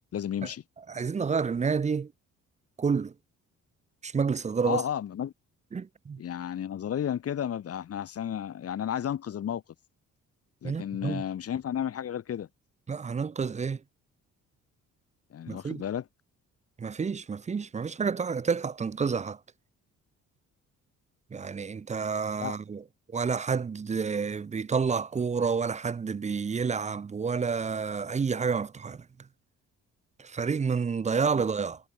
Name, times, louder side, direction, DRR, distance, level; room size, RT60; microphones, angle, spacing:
voice 1, 0.1-0.6 4.6-5.3 6.2-9.6 10.6-12.5 15.3-16.1 22.4-22.6 31.3-31.4, left 9 dB, 50° left, 1.2 m, -32 dB
voice 2, 0.9-2.1 2.8-3.1 4.0-4.8 5.7-6.2 10.6-11.2 12.9-13.8 15.5-15.8 16.8-19.4 21.3-22.8 23.1-29.0 30.2-31.8, right 5 dB, 25° right, 0.5 m, -29 dB
cardioid pair, 90°, 30 cm